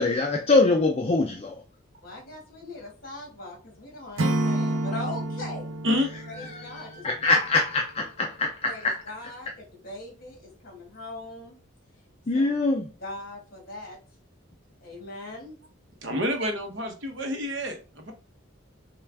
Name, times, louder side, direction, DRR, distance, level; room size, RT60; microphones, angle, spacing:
voice 1, 0.0-1.6 6.4-9.0 12.3-12.9, left 3 dB, 30° left, 0.4 m, -24 dB
voice 2, 2.0-5.7 6.4-7.4 8.6-8.8 9.1-9.5 9.8-11.5 12.3-12.5 13.0-14.0 14.8-15.6, left 2 dB, 45° left, 1.8 m, -40 dB
Acoustic guitar / Strum, 4.2-7.2, right 1 dB, 85° right, 0.8 m, -29 dB
voice 3, 5.8-6.2 16.0-18.1, left 1 dB, 60° right, 0.9 m, -28 dB
5.7 x 2.4 x 3.4 m
head